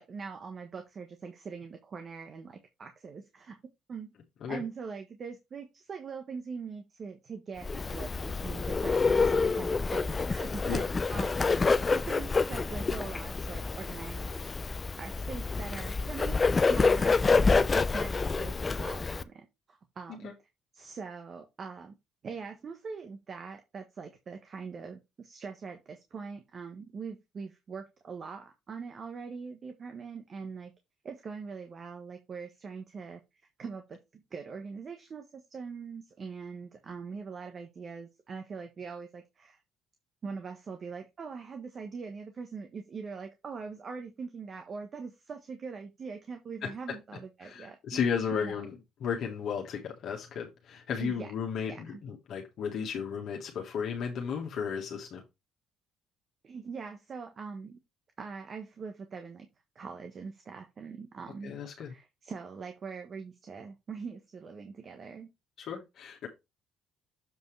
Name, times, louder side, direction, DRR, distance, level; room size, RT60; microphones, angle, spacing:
voice 1, 0.0-3.6 3.9-4.1 4.5-14.5 15.0-20.3 20.7-22.0 22.2-30.7 31.0-33.2 33.6-39.6 40.2-48.0 48.3-48.7 51.0-51.3 51.7-52.0 56.4-57.8 58.2-59.5 59.7-61.5 61.8-65.3, right 5 dB, 45° right, 1.3 m, -42 dB
Bird, 7.6-19.2, left 4 dB, 30° left, 0.6 m, -27 dB
voice 2, 47.4-48.7 49.0-55.2 61.4-61.9 65.6-66.3, left 7 dB, 65° left, 1.7 m, -34 dB
7.4 x 5.4 x 3.4 m
supercardioid pair, 80°, 0 cm